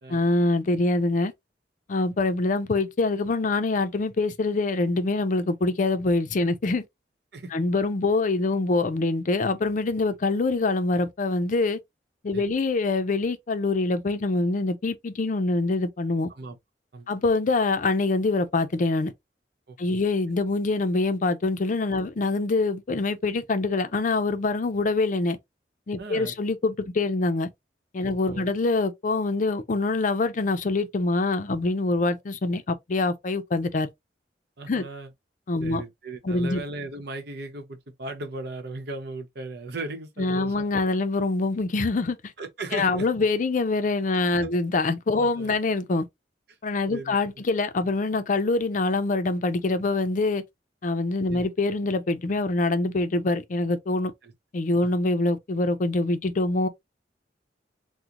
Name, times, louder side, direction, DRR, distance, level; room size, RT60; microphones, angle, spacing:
voice 1, 0.1-1.3 1.9-6.8 7.5-11.8 12.2-16.3 17.1-19.1 19.8-25.4 25.9-27.5 27.9-33.9 34.7-34.8 35.5-35.8 36.2-36.6 40.2-42.2 42.7-46.0 46.6-50.4 50.8-54.1 54.5-56.7, left 3 dB, 45° left, 0.5 m, -25 dB
voice 2, 26.0-26.4 28.1-28.5 34.6-35.1 35.6-40.7 42.4-43.1 44.4-44.5 45.1-45.6 46.9-47.4 51.3-51.5 54.2-54.3 54.8-54.9, right 2 dB, 65° right, 0.8 m, -37 dB
3.7 x 2.1 x 2.8 m
head